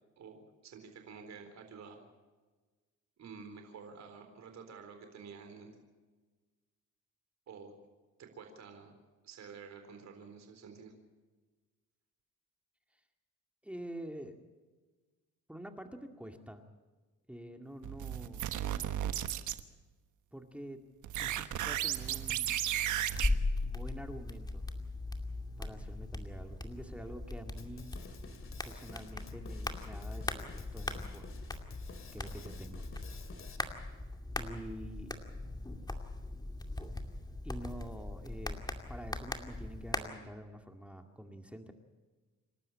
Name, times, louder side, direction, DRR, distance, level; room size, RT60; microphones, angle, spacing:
voice 1, 0.2-2.1 3.2-5.7 7.5-7.7 8.2-8.9 9.2-10.9, right 5 dB, 65° right, 5 dB, 4.0 m, -50 dB
voice 2, 13.6-14.4 15.5-16.6 17.3-18.5 20.3-20.8 21.2-22.7 23.6-24.7 25.6-27.9 28.6-31.3 32.1-32.8 34.4-35.1 37.4-41.7, right 1 dB, 5° right, 4 dB, 2.1 m, -47 dB
sound 1, 17.8-19.6 21.0-23.3, right 11 dB, 80° right, 1.3 m, -34 dB
sound 2, 23.1-40.0, left 2 dB, 15° left, 2.4 m, -39 dB
Drum kit, 27.6-33.6, left 5 dB, 45° left, 2.6 m, -50 dB
28.5 x 12.5 x 8.7 m, 1.3 s
cardioid pair, 90°, 30 cm